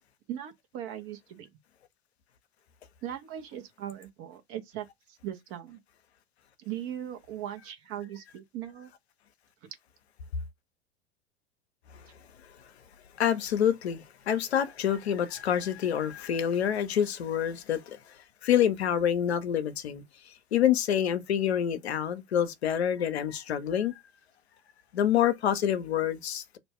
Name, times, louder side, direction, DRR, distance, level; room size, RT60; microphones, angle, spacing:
voice 1, 0.3-1.5 3.0-5.8 6.6-8.9 9.6-9.7, right 11 dB, 40° right, 0.9 m, -39 dB
voice 2, 13.2-18.0 18.4-23.9 24.9-26.6, left 9 dB, 75° left, 0.6 m, -27 dB
2.5 x 2.2 x 3.5 m
figure-of-eight pair, 85°, 33 cm